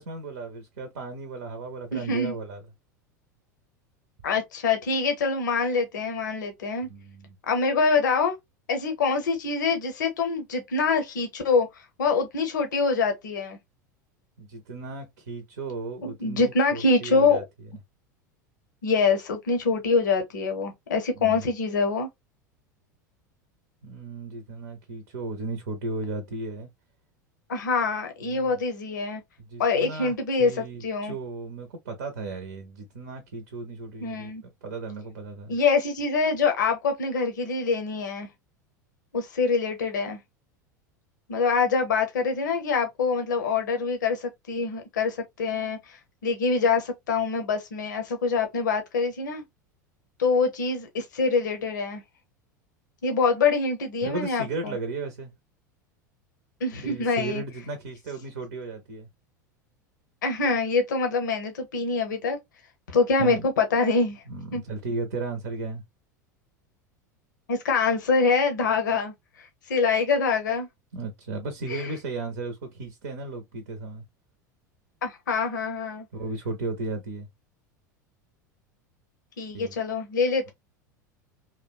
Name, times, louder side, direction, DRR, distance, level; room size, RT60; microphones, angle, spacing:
voice 1, 0.0-2.6 6.9-7.4 14.4-17.4 21.1-21.5 23.8-26.7 28.2-28.5 29.5-35.5 54.0-55.3 56.8-59.1 63.2-63.5 64.3-65.8 70.9-74.0 76.1-77.3 79.5-79.7, right 3 dB, 70° right, 0.6 m, -35 dB
voice 2, 1.9-2.4 4.2-6.9 7.4-8.4 8.7-13.6 16.0-17.4 18.8-22.1 27.5-29.2 29.6-31.2 34.0-34.4 35.5-38.3 39.1-40.2 41.3-49.4 50.2-52.0 53.0-54.8 56.6-57.4 60.2-62.4 62.9-64.2 64.5-64.6 67.5-70.7 71.7-71.9 75.0-76.1 79.4-80.5, left 4 dB, 75° left, 0.7 m, -25 dB
2.9 x 2.1 x 2.2 m
hypercardioid pair, 85°, 10 cm